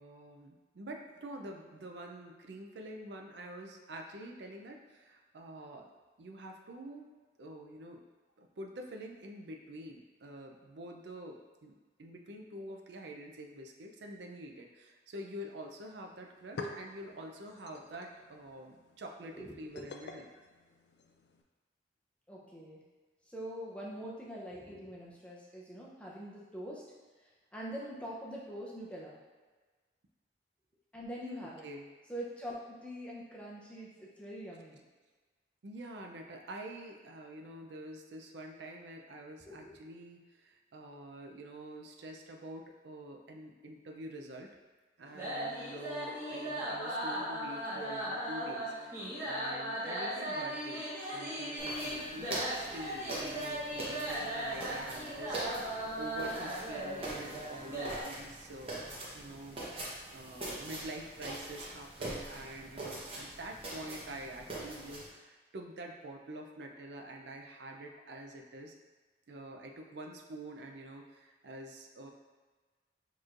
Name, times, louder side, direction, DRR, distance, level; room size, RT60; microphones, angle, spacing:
voice 1, 0.0-5.9 6.2-7.1 7.4-8.0 8.4-11.7 12.0-20.3 31.4-31.9 35.6-44.5 45.0-50.8 51.1-58.9 59.1-59.9 60.1-68.8 69.3-72.1, right 1 dB, 75° right, 2 dB, 0.5 m, -47 dB
sound 1, 16.2-21.4, left 3 dB, 75° left, 0.4 m, -48 dB
voice 2, 22.3-22.8 23.3-26.8 27.5-29.2 30.9-31.7 32.1-34.8 39.5-39.8, equal, 5° left, -5 dB, 0.6 m, -44 dB
sound 2, 45.1-58.0, right 1 dB, 15° right, 1.2 m, -38 dB
sound 3, 51.6-65.1, right 2 dB, 30° right, 0.9 m, -43 dB
6.5 x 3.1 x 2.5 m, 1.3 s
head